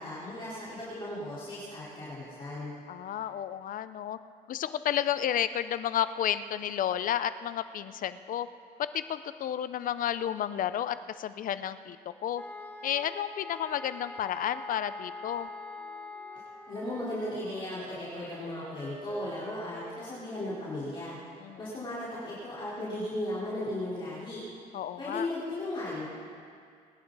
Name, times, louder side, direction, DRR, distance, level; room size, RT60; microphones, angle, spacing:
voice 1, 0.0-2.7 16.7-24.4 25.0-26.0, left 1 dB, 30° left, -10 dB, 4.2 m, -36 dB
voice 2, 2.9-4.2 4.5-8.5 8.8-12.0 12.2-12.4 12.8-15.5 21.4-21.6 24.7-25.3, left 10 dB, 55° left, 13 dB, 0.6 m, -31 dB
sound 1, 12.4-17.1, left 3 dB, 10° left, 0.9 m, -43 dB
Wind instrument woodwind instrument, 15.7-21.0, right 2 dB, 30° right, 1.9 m, -49 dB
22.0 x 11.0 x 4.1 m, 2.2 s
cardioid pair, 110°, 17 cm